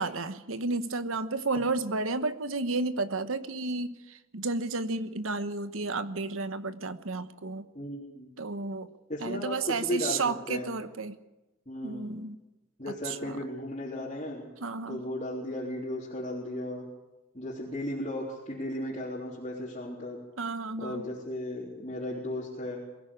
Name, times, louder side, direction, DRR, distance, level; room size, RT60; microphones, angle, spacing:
voice 1, 0.0-7.6 8.4-8.9 9.2-11.2 11.8-12.4 12.9-13.4 14.6-15.0 20.4-21.1, right 3 dB, 85° right, 12 dB, 1.2 m, -32 dB
voice 2, 7.7-8.3 9.1-10.2 10.5-10.7 11.7-12.1 12.8-14.4 14.9-16.9 17.3-20.2 20.8-22.8, left 1 dB, 35° left, -6 dB, 3.8 m, -35 dB
23.0 x 15.5 x 8.7 m, 1.0 s
head